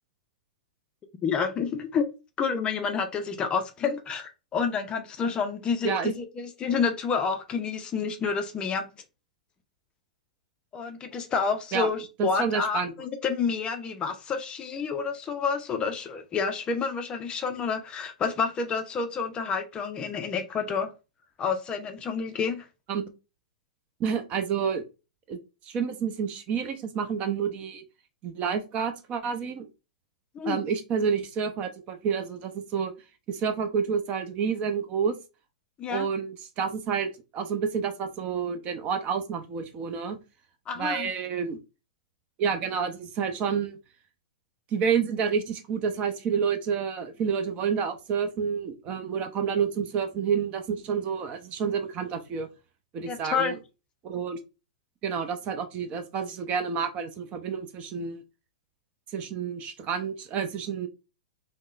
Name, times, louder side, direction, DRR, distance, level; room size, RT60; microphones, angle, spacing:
voice 1, 1.2-2.1 2.4-8.9 10.7-20.9 21.4-22.7 30.3-30.6 35.8-36.1 40.7-41.1 53.1-53.6, left 5 dB, 25° left, 0.4 m, -29 dB
voice 2, 12.2-12.9 22.9-23.1 24.0-24.8 25.3-25.4 25.6-27.8 28.2-29.7 30.4-32.9 33.3-35.2 35.9-40.2 40.8-41.6 42.4-43.8 44.7-52.5 52.9-53.6 54.0-54.4 55.0-58.2 59.1-60.9, right 6 dB, 30° right, 0.5 m, -29 dB
3.5 x 2.0 x 2.4 m
hypercardioid pair, 115°, 4 cm